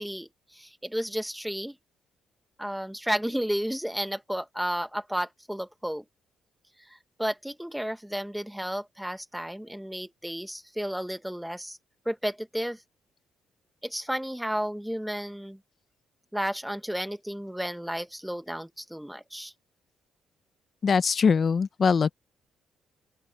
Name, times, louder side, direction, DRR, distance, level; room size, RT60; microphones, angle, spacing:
voice 1, 0.0-1.7 2.6-6.0 6.8-11.8 12.0-12.8 13.8-15.6 16.3-19.5, equal, 5° right, 1.7 m, -32 dB
voice 2, 20.8-22.1, left 5 dB, 45° left, 0.7 m, -22 dB
open air
cardioid pair, 90°, 0 cm